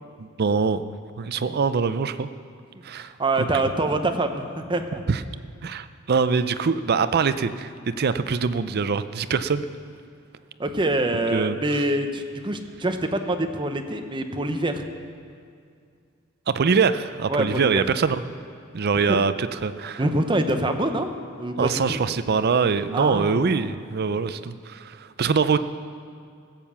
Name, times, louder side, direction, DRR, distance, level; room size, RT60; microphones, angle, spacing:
voice 1, 0.2-2.3 2.8-3.1 5.1-5.2 5.6-9.7 11.3-11.6 16.5-18.2 18.7-20.0 21.6-25.6, right 5 dB, 50° right, 12 dB, 0.5 m, -23 dB
voice 2, 3.2-5.0 10.6-14.8 17.3-17.8 18.9-19.2 20.0-21.1 21.4-22.0 22.9-23.4, right 1 dB, 25° right, 6 dB, 0.8 m, -25 dB
15.5 x 7.4 x 7.1 m, 2.2 s
head